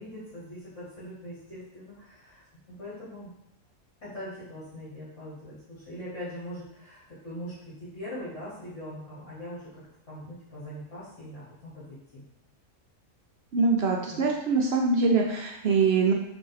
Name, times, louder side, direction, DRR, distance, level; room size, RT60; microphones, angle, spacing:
voice 1, 0.0-3.3 4.0-12.2 14.1-14.3, equal, 55° left, -10 dB, 1.7 m, -42 dB
voice 2, 13.5-16.1, right 4 dB, 65° right, 0 dB, 0.6 m, -23 dB
3.8 x 2.8 x 3.9 m, 0.80 s
omnidirectional pair, 1.5 m